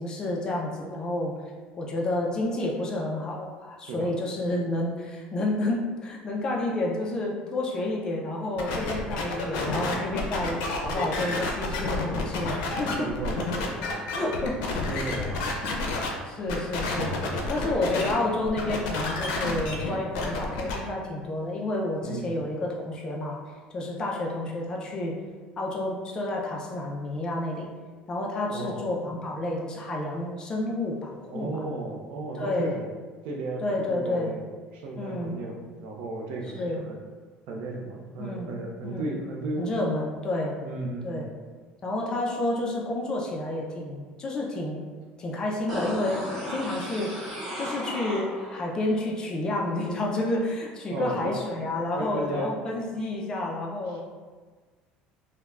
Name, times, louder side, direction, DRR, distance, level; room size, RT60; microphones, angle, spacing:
voice 1, 0.0-1.3 1.8-13.1 14.1-14.6 14.9-15.1 15.6-15.7 16.2-17.1 17.5-23.4 23.7-25.2 25.6-27.7 28.1-31.6 32.4-32.7 33.6-34.3 35.0-35.3 36.5-36.8 38.2-38.5 38.8-39.1 39.6-40.5 41.0-41.3 41.8-44.8 45.2-46.2 46.5-47.2 47.6-54.0, left 2 dB, 25° left, -1 dB, 0.3 m, -30 dB
sound 1, 8.6-16.1 16.5-18.1 18.4-20.8, left 3 dB, 85° left, 0.5 m, -30 dB
voice 2, 12.9-14.3 14.9-15.7 17.2-18.0 22.0-22.4 28.5-28.8 31.3-32.8 33.2-37.0 37.5-39.7 40.6-41.3 50.9-51.4 51.9-52.5 53.0-53.1 53.9-54.0, right 2 dB, 65° right, 0 dB, 0.5 m, -35 dB
sound 2, 45.7-48.7 49.0-49.1, equal, 5° left, 1.0 m, -35 dB
3.1 x 2.1 x 2.3 m, 1.4 s
cardioid pair, 170°, 3 cm